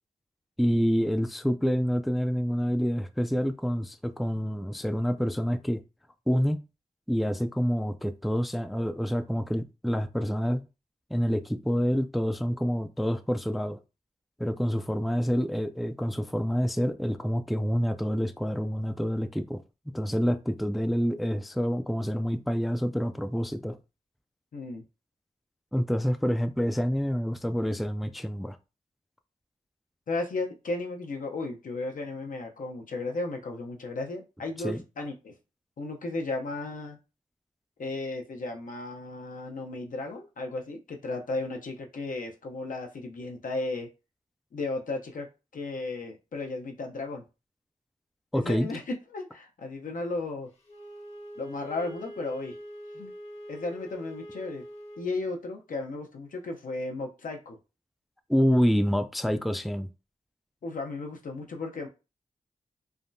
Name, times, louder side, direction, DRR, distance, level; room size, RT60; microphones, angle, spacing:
voice 1, 0.6-5.8 6.3-6.6 7.1-10.6 11.1-13.8 14.4-19.6 19.9-23.8 25.7-28.6 34.6-34.8 48.3-48.7 58.3-59.9, equal, ahead, 0.3 m, -27 dB
voice 2, 24.5-24.8 30.1-35.3 35.8-37.0 37.8-43.9 44.5-45.3 45.5-47.2 48.3-48.8 49.1-50.5 51.4-52.6 52.9-53.1 53.5-54.6 55.0-57.6 60.6-61.9, left 3 dB, 75° left, 0.7 m, -34 dB
Wind instrument woodwind instrument, 50.7-55.1, equal, 50° left, 1.0 m, -44 dB
3.4 x 2.2 x 2.6 m
cardioid pair, 50°, 14 cm